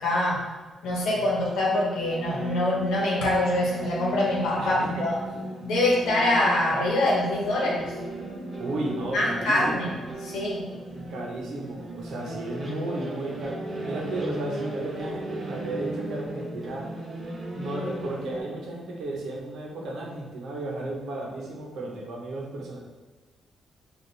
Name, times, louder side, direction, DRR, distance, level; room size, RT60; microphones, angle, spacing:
voice 1, 0.0-0.4 0.8-5.2 5.6-7.9 9.1-10.7 10.9-11.0, left 1 dB, 75° left, -3 dB, 1.0 m, -25 dB
sound 1, 1.3-18.4, right 1 dB, 25° right, 0.6 m, -36 dB
voice 2, 4.6-5.1 8.6-9.9 11.1-16.8 17.5-22.8, right 2 dB, 65° right, -1 dB, 0.8 m, -34 dB
4.2 x 2.5 x 3.2 m, 1.3 s
cardioid pair, 180°, 0 cm